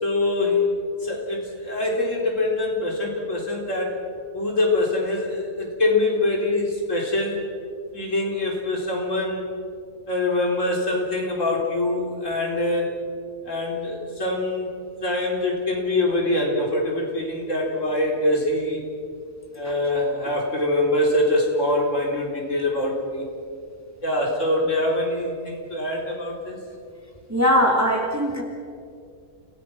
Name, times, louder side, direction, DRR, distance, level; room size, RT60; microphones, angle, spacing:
voice 1, 0.0-0.7 1.0-3.9 4.3-7.4 7.9-9.4 10.1-13.0 13.4-14.7 15.0-18.8 19.5-23.3 24.0-26.6, left 2 dB, 60° left, -1 dB, 4.3 m, -24 dB
voice 2, 27.3-28.4, equal, 10° right, 0 dB, 2.9 m, -20 dB
30.0 x 18.0 x 6.2 m, 2.4 s
omnidirectional pair, 1.5 m